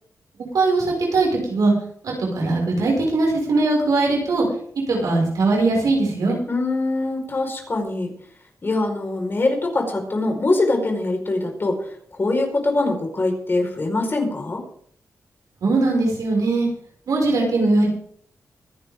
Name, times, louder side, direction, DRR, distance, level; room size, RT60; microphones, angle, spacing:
voice 1, 0.5-1.7 2.0-4.4 4.9-6.4 15.6-16.7 17.1-17.9, right 3 dB, 85° right, -2 dB, 6.0 m, -20 dB
voice 2, 6.5-8.1 8.6-14.6, left 2 dB, 40° left, 2 dB, 4.8 m, -23 dB
24.5 x 10.5 x 3.8 m, 0.63 s
cardioid pair, 80°, 6 cm